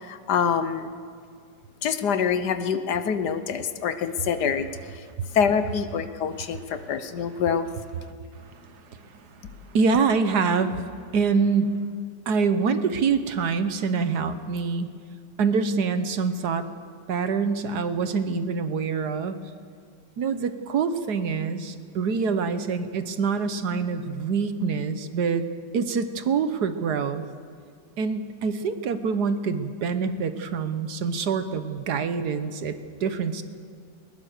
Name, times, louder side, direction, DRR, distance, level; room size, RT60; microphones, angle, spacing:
voice 1, 0.0-0.9 1.8-4.7 4.9-5.0 5.3-7.7, left 7 dB, 65° left, 11 dB, 1.4 m, -25 dB
voice 2, 8.5-9.1 9.7-10.8 11.1-11.8 12.3-14.9 15.4-16.7 17.1-19.4 20.2-25.4 25.7-27.2 28.0-33.4, right 5 dB, 65° right, 10 dB, 1.5 m, -25 dB
20.5 x 20.5 x 6.6 m, 2.1 s
omnidirectional pair, 2.0 m